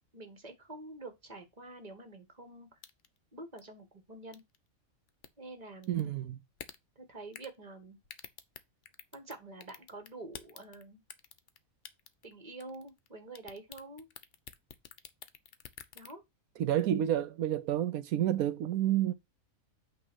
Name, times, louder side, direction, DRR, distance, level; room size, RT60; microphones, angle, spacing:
voice 1, 0.1-2.8 3.3-4.4 5.4-6.0 7.0-8.0 9.1-11.0 12.2-14.1 15.9-16.2, right 2 dB, 30° right, 1.8 m, -47 dB
sound 1, 2.8-3.2 3.6-3.7 4.3-4.6 5.1-5.3 5.8-6.1 6.6-6.8 7.3-7.6 8.0-9.3 9.6-10.8 11.1-11.6 11.8-12.3 12.6-13.1 13.3-16.1, left 9 dB, 60° left, 1.0 m, -48 dB
voice 2, 5.9-6.4 16.6-19.1, right 11 dB, 85° right, 1.1 m, -29 dB
8.5 x 3.3 x 6.1 m
omnidirectional pair, 1.5 m